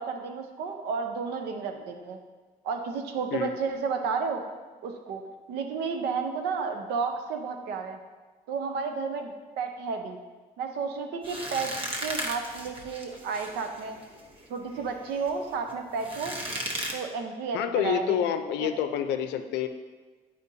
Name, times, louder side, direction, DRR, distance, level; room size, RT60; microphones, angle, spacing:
voice 1, 0.0-2.2 2.6-4.4 4.8-5.2 5.5-8.0 8.5-10.2 10.6-11.7 12.0-14.0 14.5-16.4 16.9-18.3 18.6-18.7, right 5 dB, 80° right, 5 dB, 0.7 m, -32 dB
sound 1, 11.2-16.9, right 1 dB, 30° right, 0.9 m, -36 dB
voice 2, 17.5-19.7, left 9 dB, 85° left, 8 dB, 0.5 m, -28 dB
8.3 x 5.0 x 2.8 m, 1.3 s
cardioid pair, 110°, 17 cm